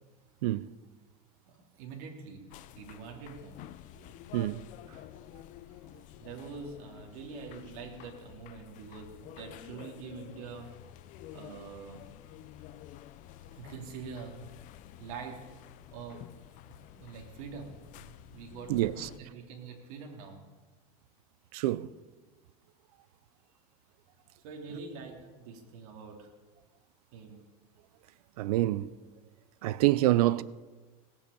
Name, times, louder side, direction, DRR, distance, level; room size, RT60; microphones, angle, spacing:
voice 1, 1.5-2.4 2.7-3.6 6.2-10.7 11.3-12.1 13.5-14.5 15.0-15.4 15.9-16.3 16.6-20.4 24.4-26.3 27.1-27.4, right 5 dB, 70° right, 3.3 m, -45 dB
sound 1, 2.5-19.2, left 13 dB, 45° left, 0.7 m, -50 dB
voice 2, 18.7-19.1 21.5-21.9 28.4-28.9 29.6-30.4, right 16 dB, 85° right, 0.6 m, -26 dB
18.0 x 8.4 x 8.6 m
supercardioid pair, 140°, 19 cm